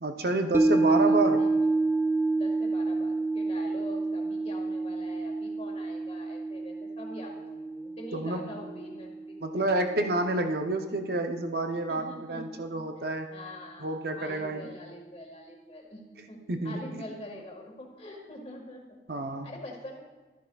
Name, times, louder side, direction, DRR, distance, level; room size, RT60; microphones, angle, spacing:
voice 1, 0.0-1.5 8.1-8.4 9.4-13.3 13.8-14.7 16.5-17.0 19.1-19.5, right 2 dB, 55° right, 6 dB, 0.6 m, -29 dB
sound 1, 0.5-10.9 11.3-11.4, right 3 dB, 10° right, 0.4 m, -29 dB
voice 2, 0.8-1.5 2.4-9.3 11.9-12.7 13.0-19.0 19.4-20.0, left 1 dB, 35° left, 0 dB, 1.7 m, -45 dB
13.0 x 10.5 x 2.3 m, 1.3 s
head